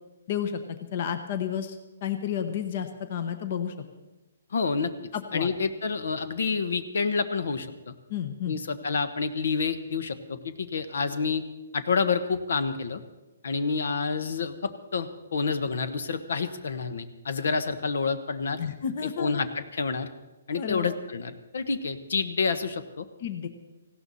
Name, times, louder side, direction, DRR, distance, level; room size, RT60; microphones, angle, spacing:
voice 1, 0.3-0.6 0.9-3.7 5.1-5.5 8.1-8.6 18.6-19.4 20.5-21.0 23.2-23.5, left 8 dB, 35° left, 9 dB, 1.0 m, -31 dB
voice 2, 4.5-4.9 5.3-7.9 8.5-11.4 11.7-13.0 13.4-18.6 19.0-20.1 20.5-23.1, left 5 dB, 70° left, 11 dB, 1.2 m, -28 dB
18.5 x 16.5 x 4.2 m, 1.0 s
hypercardioid pair, 170°, 0 cm